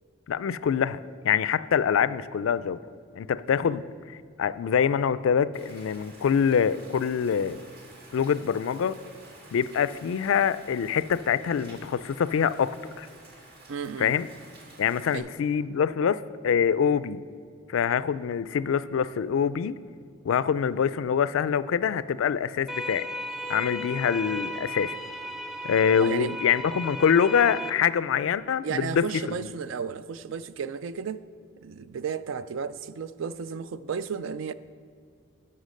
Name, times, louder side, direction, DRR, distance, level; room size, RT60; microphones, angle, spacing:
voice 1, 0.3-2.8 3.1-3.8 4.1-7.6 8.1-9.0 9.5-13.1 14.0-14.3 14.8-17.2 17.7-19.7 20.2-23.1 23.5-25.0 25.6-29.5, left 7 dB, 75° left, 0.3 m, -25 dB
Rain, 5.5-15.2, right 2 dB, 50° right, 1.9 m, -51 dB
voice 2, 13.7-14.1 15.1-15.3 26.0-26.4 28.6-31.3 31.6-34.5, right 6 dB, 70° right, 0.4 m, -33 dB
sound 1, 22.7-27.7, left 1 dB, ahead, 0.4 m, -35 dB
11.5 x 5.6 x 6.4 m
head